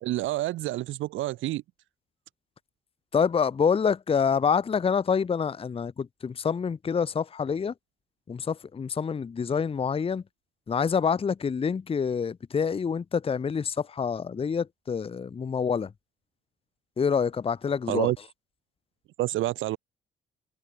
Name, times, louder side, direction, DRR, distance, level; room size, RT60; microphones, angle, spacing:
voice 1, 0.0-1.6 17.9-18.2 19.2-19.8, right 16 dB, 75° right, 0.5 m, -28 dB
voice 2, 3.1-7.7 8.3-10.2 10.7-15.9 17.0-18.1, left 6 dB, 30° left, 0.7 m, -27 dB
cardioid pair, 90°, 20 cm